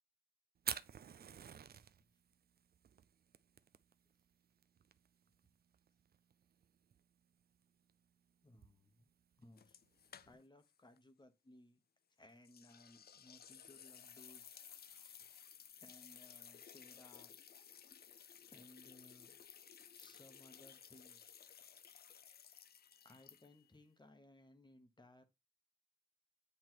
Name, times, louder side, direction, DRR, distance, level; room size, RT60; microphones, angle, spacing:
Fire, 0.5-10.3, right 8 dB, 60° right, 0.4 m, -51 dB
voice 1, 8.4-9.1 9.4-9.8 10.2-11.8 12.2-15.1 15.5-17.3 18.5-19.4 20.0-21.4 23.0-25.2, left 1 dB, 25° left, 1.1 m, -63 dB
sound 1, 9.6-10.7 11.0-11.1 12.4-23.7, left 8 dB, 60° left, 0.4 m, -58 dB
7.8 x 3.2 x 4.5 m
wide cardioid pair, 90°, 19 cm